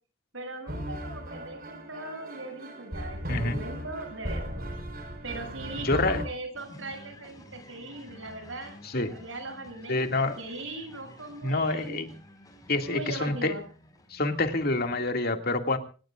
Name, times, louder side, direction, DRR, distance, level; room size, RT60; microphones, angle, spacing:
voice 1, 0.3-4.6 5.2-12.0 12.8-13.6, right 2 dB, 80° right, 6 dB, 7.9 m, -40 dB
sound 1, 0.7-6.3, equal, 50° right, 4.4 m, -36 dB
voice 2, 5.8-6.2 8.8-9.1 9.9-10.4 11.4-12.1 12.7-13.5 14.1-15.8, left 2 dB, 50° left, 6 dB, 2.3 m, -27 dB
sound 2, 6.5-15.1, left 1 dB, 20° left, 5.1 m, -52 dB
26.0 x 19.0 x 2.5 m, 0.37 s
head